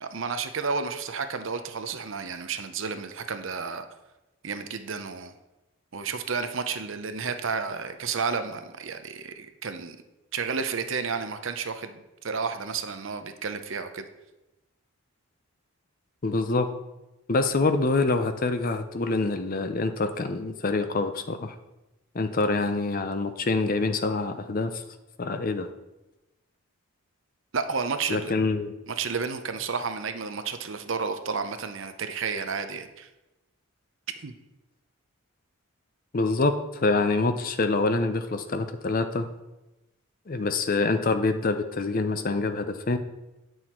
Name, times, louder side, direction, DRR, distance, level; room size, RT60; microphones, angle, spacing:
voice 1, 0.0-3.9 4.4-5.3 5.9-10.0 10.3-14.0 27.5-28.3 28.9-33.1 34.2-34.3, right 5 dB, 60° right, 8 dB, 0.7 m, -31 dB
voice 2, 16.2-16.7 17.3-21.5 22.1-24.8 25.2-25.7 28.1-28.7 36.1-39.3 40.3-43.0, left 3 dB, 40° left, 9 dB, 0.6 m, -26 dB
9.1 x 6.3 x 4.4 m, 1.0 s
head